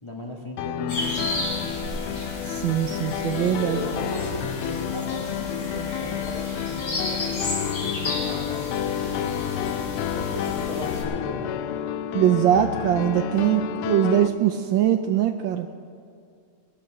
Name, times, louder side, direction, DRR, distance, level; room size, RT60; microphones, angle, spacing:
voice 1, 0.0-1.7 3.5-9.8 10.1-11.6, equal, 15° left, -3 dB, 1.8 m, -37 dB
Piano, 0.6-14.3, left 11 dB, 90° left, 1.5 m, -30 dB
sound 1, 0.9-11.0, left 1 dB, 65° left, 4.5 m, -33 dB
voice 2, 2.4-3.8 12.1-15.7, right 11 dB, 75° right, 7 dB, 1.2 m, -22 dB
21.5 x 8.4 x 6.4 m, 2.3 s
omnidirectional pair, 2.4 m